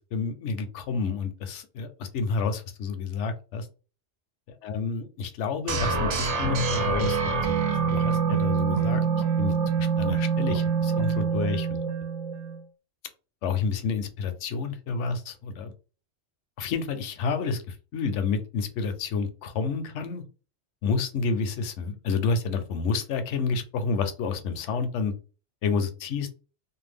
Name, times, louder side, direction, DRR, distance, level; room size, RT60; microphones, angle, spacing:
voice 1, 0.0-3.7 4.6-7.6 7.9-9.0 9.4-11.8 13.4-15.7 16.6-20.2 20.8-25.1 25.6-26.3, left 5 dB, 85° left, 8 dB, 0.9 m, -29 dB
sound 1, 5.7-12.6, right 6 dB, 90° right, 1.0 m, -25 dB
2.6 x 2.2 x 3.3 m, 0.35 s
omnidirectional pair, 1.2 m